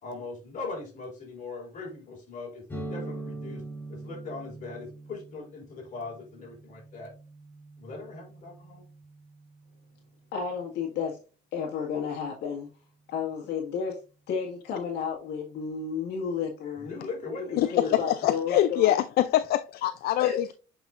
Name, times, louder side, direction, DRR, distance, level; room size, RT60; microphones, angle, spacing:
voice 1, 0.0-7.1 7.8-8.8 16.8-18.0, left 3 dB, 50° left, 4.1 m, -40 dB
sound 1, 2.7-10.3, right 2 dB, 10° left, 4.1 m, -43 dB
voice 2, 10.3-11.2 11.5-12.7 13.1-14.0 14.3-17.0 17.4-19.0 20.2-20.4, left 6 dB, 80° left, 1.7 m, -32 dB
voice 3, 17.6-20.5, left 13 dB, 65° left, 0.4 m, -24 dB
7.8 x 5.5 x 2.5 m
cardioid pair, 110°, 17 cm